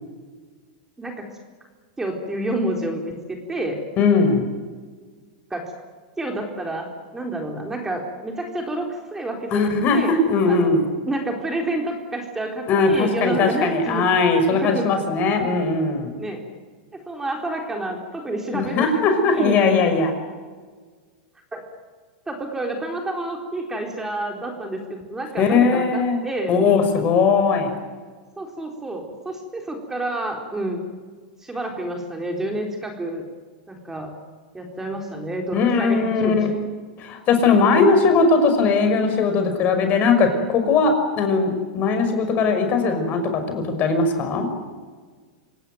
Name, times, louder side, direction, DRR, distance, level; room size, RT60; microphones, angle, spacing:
voice 1, 2.0-3.8 5.5-5.7 6.2-6.8 7.1-10.1 10.5-10.8 11.1-14.0 14.5-14.9 16.2-16.4 16.9-19.6 21.5-21.6 22.3-26.6 28.4-30.9 31.4-33.2 33.7-34.2 34.5-36.4 37.7-37.9, right 1 dB, 10° right, 2 dB, 4.0 m, -29 dB
voice 2, 4.0-4.4 9.5-10.8 12.7-16.1 18.5-20.1 25.4-27.7 35.5-36.5 37.0-44.5, left 4 dB, 35° left, 7 dB, 5.8 m, -19 dB
27.0 x 18.0 x 9.4 m, 1.5 s
hypercardioid pair, 125°, 5 cm